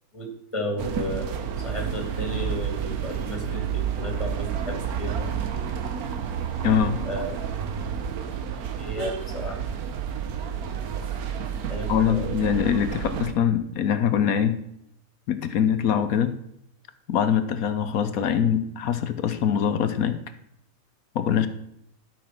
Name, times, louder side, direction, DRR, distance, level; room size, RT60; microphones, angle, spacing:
voice 1, 0.1-5.3 7.0-7.4 8.8-9.8 11.7-12.4, equal, 20° left, 2 dB, 2.2 m, -33 dB
sound 1, 0.8-13.3, right 8 dB, 75° right, 1.4 m, -30 dB
voice 2, 6.6-7.0 11.9-14.6 15.3-16.4 17.1-20.2 21.1-21.5, left 8 dB, 70° left, 10 dB, 1.1 m, -23 dB
12.0 x 6.0 x 5.8 m, 0.80 s
omnidirectional pair, 1.6 m